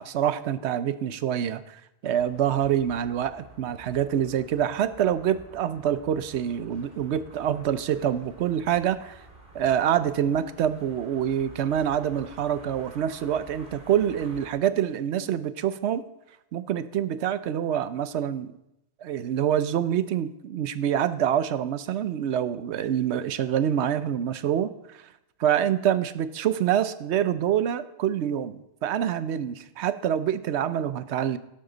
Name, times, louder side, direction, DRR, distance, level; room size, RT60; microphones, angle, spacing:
voice 1, 0.0-9.2 9.5-16.1 16.5-18.5 19.0-24.7 25.4-31.4, right 10 dB, 90° right, 14 dB, 0.9 m, -26 dB
sound 1, 2.1-14.5, right 2 dB, 60° right, 2.4 m, -50 dB
12.0 x 10.5 x 3.9 m, 0.87 s
omnidirectional pair, 1.1 m